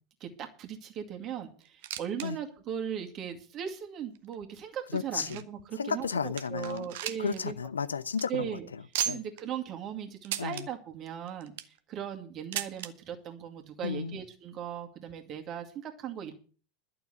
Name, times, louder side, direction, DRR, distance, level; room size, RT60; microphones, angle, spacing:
voice 1, 0.2-7.6 8.3-8.7 9.1-11.5 11.9-16.3, right 8 dB, 35° right, 2.3 m, -38 dB
sound 1, 1.6-2.3 2.6-2.7 3.3-3.4 4.2-5.6 6.0-6.1 6.4-7.4 7.7-7.8 8.1-8.2 8.9-9.4 10.2-10.7 11.3-11.8 12.5-12.9 13.9-14.0 14.2-14.3 15.1-15.2, right 11 dB, 55° right, 1.0 m, -36 dB
voice 2, 4.9-5.4 5.8-6.9 7.2-8.5 9.1-9.2 10.4-10.7 13.8-14.2, left 6 dB, 75° left, 0.6 m, -33 dB
12.0 x 6.9 x 8.2 m
figure-of-eight pair, 85°, 0 cm